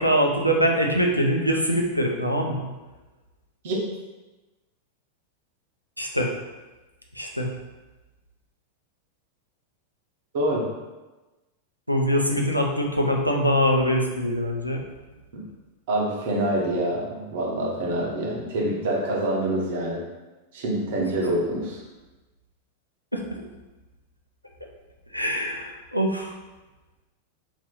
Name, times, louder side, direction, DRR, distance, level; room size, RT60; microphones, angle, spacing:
voice 1, 0.0-2.7 6.0-6.3 7.2-7.5 11.9-14.8 23.1-23.4 25.1-26.4, equal, 90° left, 0 dB, 0.4 m, -23 dB
voice 2, 10.3-10.7 15.3-15.4 15.9-20.0 20.5-21.8, right 1 dB, 55° right, -2 dB, 0.8 m, -26 dB
2.7 x 2.5 x 3.7 m, 1.1 s
figure-of-eight pair, 90°, 0 cm